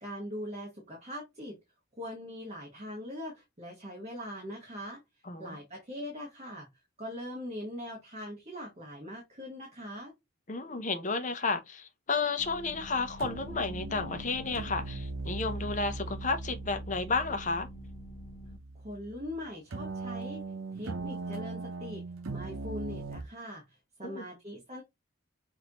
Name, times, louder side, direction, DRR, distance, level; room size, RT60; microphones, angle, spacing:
voice 1, 0.0-1.6 2.0-5.0 5.4-6.7 7.0-10.1 18.7-20.4 20.7-22.0 22.3-24.8, left 1 dB, 30° right, 1.3 m, -41 dB
voice 2, 5.3-5.6 10.5-17.7 24.0-24.2, left 4 dB, 40° left, 0.7 m, -32 dB
sound 1, 12.4-18.6, equal, 90° left, 0.9 m, -48 dB
sound 2, 12.7-12.9 13.2-19.4 19.7-23.2, right 3 dB, 85° right, 0.8 m, -40 dB
6.1 x 2.6 x 2.9 m
head